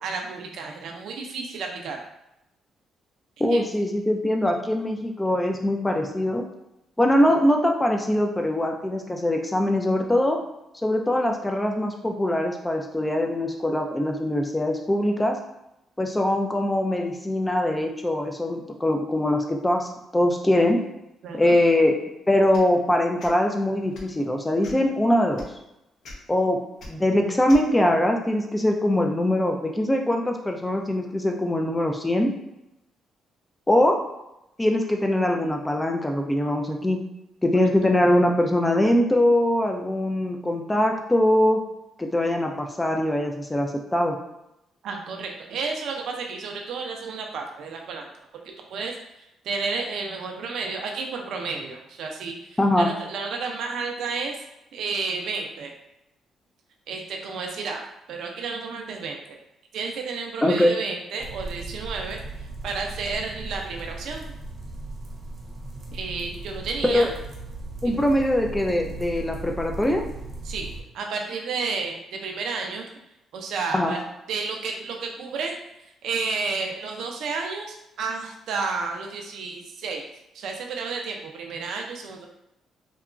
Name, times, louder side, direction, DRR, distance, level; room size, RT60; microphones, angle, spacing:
voice 1, 0.0-2.0 3.5-3.7 21.2-21.6 37.6-37.7 44.8-48.1 48.7-54.4 54.7-55.7 56.9-57.8 58.1-59.4 59.7-64.2 65.9-67.1 67.8-68.0 70.4-72.9 73.3-74.0 74.3-75.5 76.0-80.1 80.3-82.3, right 4 dB, 75° right, 2 dB, 0.4 m, -31 dB
voice 2, 3.4-6.4 7.0-10.4 10.8-15.4 16.0-20.8 21.4-21.9 22.3-25.4 26.3-26.6 26.9-32.3 33.7-34.0 34.6-37.0 37.4-41.6 42.0-44.2 52.6-52.9 60.4-60.8 66.8-67.1 67.8-70.0 73.7-73.9, left 1 dB, 15° left, 2 dB, 0.3 m, -22 dB
sound 1, 22.5-22.7 23.2-23.3 23.9-24.1 24.6-24.9 25.4-25.5 26.0-26.2 26.8-26.9 27.5-27.6, left 1 dB, 65° left, 0.6 m, -41 dB
sound 2, 61.2-70.8, right 2 dB, 40° right, 0.7 m, -37 dB
2.8 x 2.3 x 2.3 m, 0.87 s
cardioid pair, 90°, 0 cm